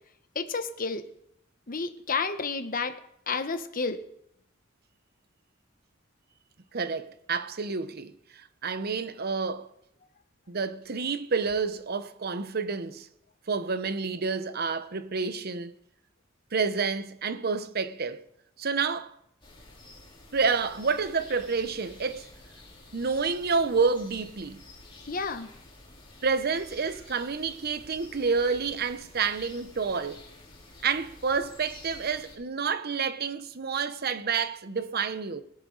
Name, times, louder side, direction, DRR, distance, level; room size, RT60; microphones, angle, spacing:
voice 1, 0.3-1.0 1.7-3.0 3.3-4.0 25.0-25.5, left 4 dB, 45° left, 1.1 m, -31 dB
voice 2, 6.7-9.7 10.5-13.1 13.5-15.7 16.5-18.3 18.6-19.1 20.3-22.3 22.9-24.6 26.2-30.2 30.8-35.4, right 5 dB, 50° right, 0.8 m, -29 dB
sound 1, 19.4-32.4, left 2 dB, 25° left, 3.8 m, -50 dB
19.5 x 11.0 x 4.0 m
head